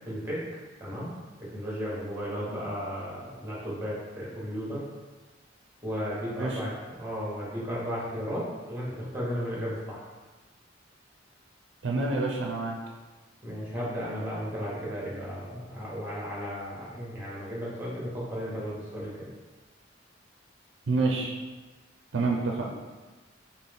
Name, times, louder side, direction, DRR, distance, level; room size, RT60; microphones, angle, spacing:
voice 1, 0.0-0.4 0.8-4.8 5.8-10.1 13.4-19.3, equal, 15° right, -7 dB, 1.0 m, -34 dB
voice 2, 11.8-12.8 20.9-21.4 22.1-22.7, right 3 dB, 70° right, 0 dB, 0.4 m, -27 dB
4.0 x 2.0 x 3.4 m, 1.2 s
head